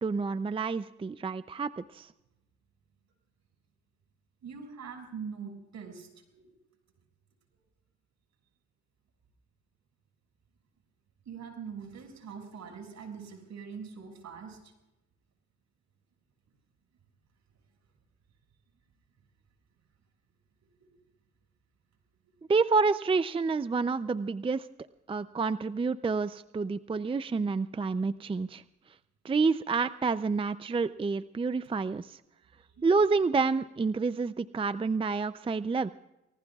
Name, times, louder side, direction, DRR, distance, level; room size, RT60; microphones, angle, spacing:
voice 1, 0.0-2.1 22.5-24.7 25.1-28.6 29.2-32.2 32.8-35.9, right 4 dB, 20° right, 14 dB, 0.5 m, -28 dB
voice 2, 4.4-6.5 11.2-14.7 20.8-20.9 31.6-31.7 32.6-32.8, right 6 dB, 65° right, 4 dB, 6.1 m, -43 dB
30.0 x 19.0 x 2.4 m, 0.95 s
cardioid pair, 90°, 30 cm